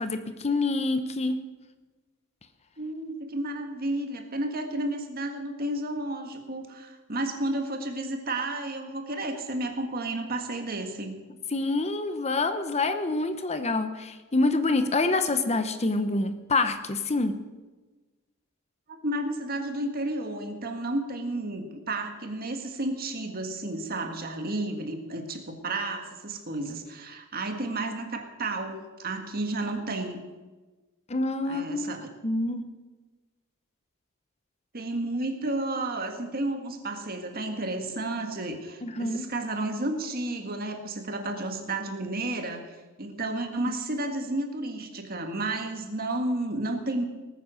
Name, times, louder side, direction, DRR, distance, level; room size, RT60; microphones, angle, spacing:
voice 1, 0.0-1.4 11.5-17.4 31.1-31.9 32.2-32.6 38.8-39.3, left 2 dB, 30° left, 10 dB, 0.8 m, -26 dB
voice 2, 2.8-11.2 18.9-30.2 31.5-32.1 34.7-47.0, right 2 dB, 45° right, 5 dB, 1.8 m, -32 dB
19.0 x 9.4 x 6.4 m, 1.2 s
head